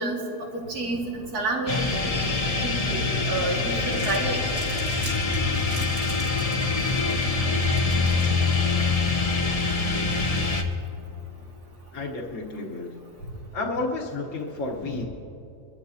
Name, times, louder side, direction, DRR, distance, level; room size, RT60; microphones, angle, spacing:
voice 1, 0.0-1.8 2.1-3.0 3.3-4.4, right 2 dB, 75° right, -2 dB, 2.5 m, -29 dB
sound 1, 1.7-10.6, left 3 dB, 30° left, 0.7 m, -24 dB
Crumpling crinkling, 3.7-9.0, right 2 dB, 45° right, 2.2 m, -44 dB
voice 2, 11.9-13.0 13.5-15.0, left 3 dB, 55° left, -4 dB, 1.4 m, -31 dB
24.0 x 13.0 x 2.7 m, 2.9 s
omnidirectional pair, 1.7 m